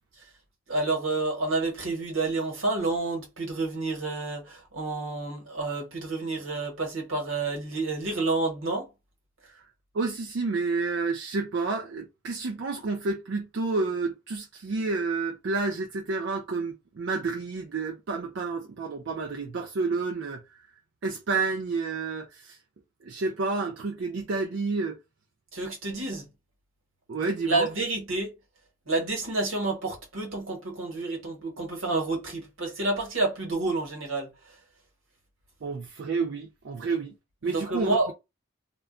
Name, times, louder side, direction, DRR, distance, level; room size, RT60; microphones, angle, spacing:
voice 1, 0.7-8.9 25.5-26.3 27.4-28.3 28.9-34.3 37.4-38.1, right 3 dB, 75° right, 1.1 m, -29 dB
voice 2, 9.9-20.4 21.0-22.6 23.0-25.0 27.1-27.7 35.6-37.1 37.4-38.1, right 4 dB, 55° right, 0.4 m, -30 dB
2.2 x 2.1 x 3.6 m
head